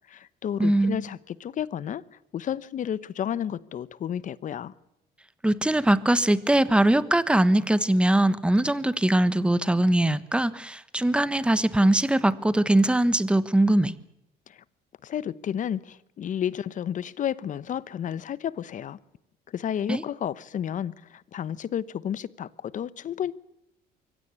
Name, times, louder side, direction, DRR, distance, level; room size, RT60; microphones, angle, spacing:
voice 1, 0.1-4.7 14.5-14.6 15.0-19.0 19.5-23.3, left 9 dB, 50° left, 1.0 m, -32 dB
voice 2, 0.6-1.0 5.4-13.9 19.9-20.0, right 1 dB, 5° right, 1.2 m, -21 dB
24.0 x 16.5 x 8.3 m
cardioid pair, 110°, 17 cm